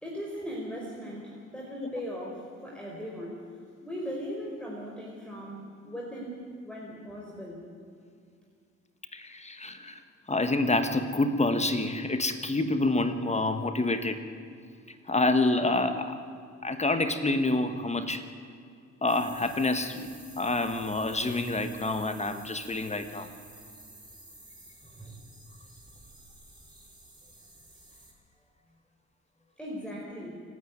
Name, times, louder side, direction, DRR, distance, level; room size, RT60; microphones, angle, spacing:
voice 1, 0.0-3.4 3.8-5.6 5.8-7.6 24.8-25.1 29.6-30.3, equal, 5° left, -4 dB, 4.5 m, -38 dB
voice 2, 9.1-10.0 10.3-14.2 15.1-16.2 16.6-18.3 19.0-20.1 20.4-23.3, left 2 dB, 20° left, 8 dB, 1.5 m, -27 dB
sound 1, 19.1-28.1, right 1 dB, 15° right, 4.4 m, -51 dB
28.0 x 9.6 x 9.6 m, 2.3 s
cardioid pair, 90°, 30 cm